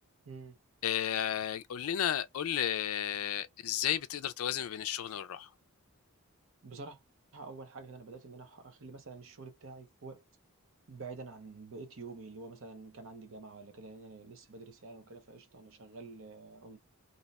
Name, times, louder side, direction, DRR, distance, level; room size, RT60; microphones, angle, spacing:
voice 1, 0.2-0.6 6.6-7.0 7.3-10.2 10.9-16.8, right 3 dB, 60° right, 0.8 m, -48 dB
voice 2, 0.8-5.5, left 10 dB, 70° left, 0.4 m, -33 dB
2.7 x 2.2 x 4.0 m
head